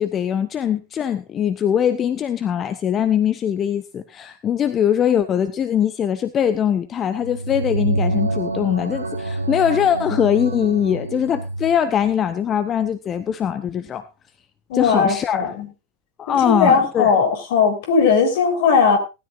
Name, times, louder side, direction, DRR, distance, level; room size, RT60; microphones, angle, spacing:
voice 1, 0.0-14.0 14.7-15.6 16.2-17.1, left 9 dB, 25° left, 11 dB, 0.8 m, -21 dB
sound 1, 7.1-11.8, right 2 dB, 80° right, 1.2 m, -26 dB
voice 2, 14.7-15.7 16.3-19.0, left 5 dB, 55° left, 4 dB, 4.1 m, -18 dB
18.5 x 13.0 x 2.6 m, 0.28 s
figure-of-eight pair, 90°, 0 cm